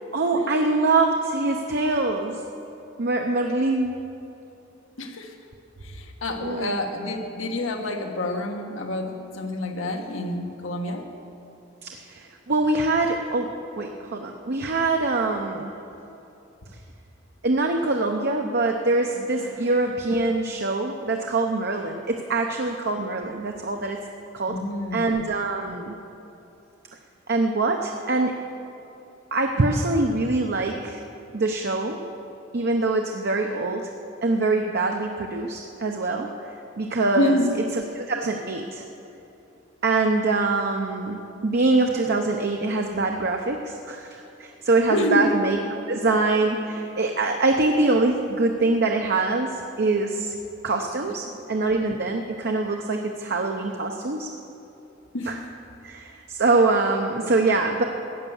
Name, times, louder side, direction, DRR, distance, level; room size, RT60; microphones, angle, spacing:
voice 1, 0.1-2.4 3.0-3.9 6.4-6.8 11.8-13.5 13.8-15.7 17.4-24.0 24.3-24.6 24.9-26.0 27.3-28.3 29.3-31.0 31.3-32.0 32.5-33.9 34.2-36.3 36.8-37.3 37.7-38.8 39.8-45.6 45.9-49.5 49.8-50.3 50.6-54.3 55.3-55.4 55.8-57.8, right 3 dB, 55° right, 3 dB, 0.8 m, -24 dB
voice 2, 5.0-5.3 5.8-11.0 24.5-25.1 37.2-37.6 44.9-45.3 55.1-55.3, left 1 dB, 90° left, 3 dB, 1.4 m, -28 dB
15.0 x 9.3 x 7.1 m, 2.8 s
head